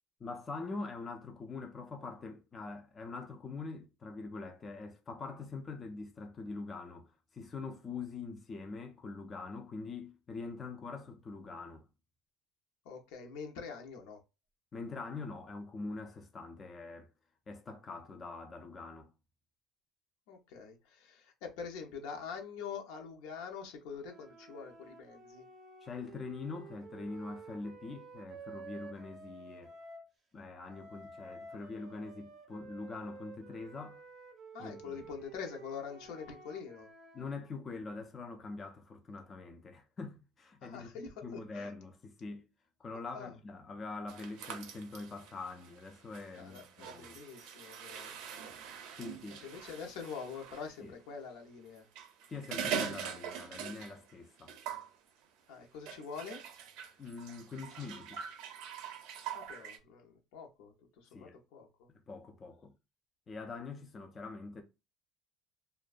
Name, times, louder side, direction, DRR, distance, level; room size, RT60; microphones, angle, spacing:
voice 1, 0.2-11.8 14.7-17.1 17.5-19.1 25.8-29.8 30.3-34.0 34.6-35.0 37.1-40.9 41.2-42.5 42.8-47.2 49.0-49.4 50.8-50.9 52.3-54.5 57.0-58.2 61.1-61.4 62.1-62.7 63.3-64.6, left 3 dB, 20° left, 0.3 m, -44 dB
voice 2, 12.8-14.2 20.3-25.5 34.5-36.9 40.6-41.7 43.1-43.4 46.3-48.2 49.4-51.9 55.5-56.4 59.3-61.9, left 6 dB, 80° left, 0.6 m, -45 dB
sound 1, 24.0-30.1 30.7-37.3, right 3 dB, 25° right, 0.6 m, -52 dB
sound 2, 44.1-50.7 51.8-54.1 54.4-54.9 55.9-59.8, right 7 dB, 70° right, 0.5 m, -43 dB
2.5 x 2.1 x 2.4 m
cardioid pair, 160°, 0 cm